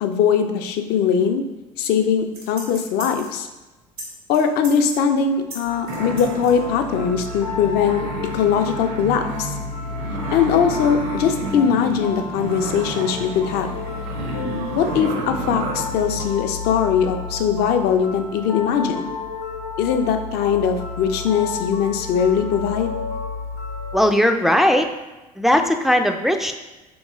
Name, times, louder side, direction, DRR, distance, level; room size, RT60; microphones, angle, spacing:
voice 1, 0.0-1.4 1.8-3.5 4.3-8.0 8.3-9.5 10.3-13.7 14.8-19.1 19.8-23.0, left 7 dB, 55° left, 7 dB, 0.5 m, -21 dB
sound 1, 2.2-3.4 3.9-4.1 4.3-6.5 6.9-7.0, right 2 dB, 90° right, 1.1 m, -37 dB
sound 2, 5.6-24.0, left 4 dB, 80° left, 0.8 m, -32 dB
sound 3, 5.9-16.3, right 2 dB, 60° right, 0.7 m, -31 dB
voice 2, 23.9-24.9 25.4-26.6, equal, ahead, 5 dB, 0.3 m, -18 dB
3.5 x 3.0 x 3.6 m, 1.1 s
hypercardioid pair, 60°, 20 cm